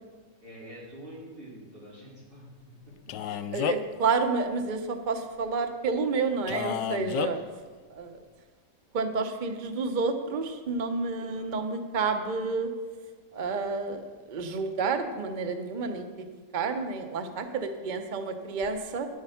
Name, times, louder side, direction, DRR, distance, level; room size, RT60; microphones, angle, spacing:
voice 1, 0.4-3.2 7.2-7.4 11.2-11.7, equal, 30° right, -6 dB, 3.7 m, -47 dB
Male speech man speaking, 3.1-4.0 6.5-7.3, left 9 dB, 80° left, 1.2 m, -31 dB
voice 2, 3.5-7.4 7.9-8.2 8.9-12.7 13.3-14.0 14.3-16.1 16.5-19.1, right 4 dB, 85° right, 7 dB, 0.4 m, -30 dB
10.0 x 8.4 x 5.6 m, 1.4 s
omnidirectional pair, 1.9 m